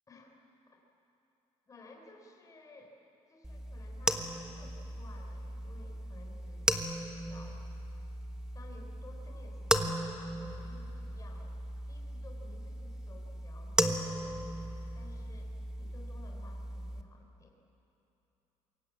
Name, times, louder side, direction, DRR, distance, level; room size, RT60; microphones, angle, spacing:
voice 1, 1.7-3.0 3.3-6.7 7.3-7.6 8.5-10.0 10.4-11.6 11.9-17.6, left 3 dB, 25° left, 1 dB, 3.9 m, -56 dB
sound 1, 3.4-17.0, right 1 dB, 5° right, 1.3 m, -36 dB
27.5 x 22.5 x 8.5 m, 2.9 s
cardioid pair, 135°, 12 cm